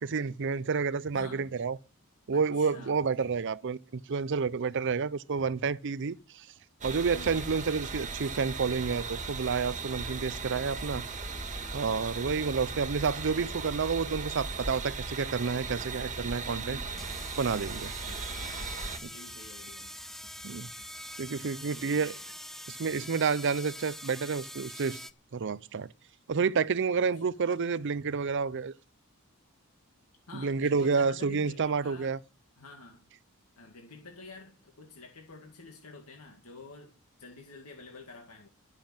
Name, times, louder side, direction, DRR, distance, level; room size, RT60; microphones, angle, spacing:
voice 1, 0.0-1.8 2.3-6.5 6.8-11.0 11.7-16.8 17.4-17.9 20.4-20.7 21.2-22.1 22.7-25.0 25.3-25.9 26.3-28.7 30.3-32.2, right 5 dB, 55° right, 0.5 m, -29 dB
voice 2, 1.1-1.6 2.3-3.4 7.1-7.5 11.9-12.3 16.4-16.9 17.8-18.3 18.5-19.9 21.5-22.2 27.1-27.4 30.3-32.2 32.6-33.1 33.6-36.9 37.2-38.5, left 3 dB, 80° left, 2.2 m, -49 dB
sound 1, 6.8-19.0, right 4 dB, 35° right, 1.7 m, -37 dB
sound 2, 16.1-16.2 16.9-25.1, equal, ahead, 0.6 m, -44 dB
sound 3, 16.9-22.3, left 1 dB, 60° left, 2.6 m, -58 dB
12.5 x 7.5 x 8.9 m
head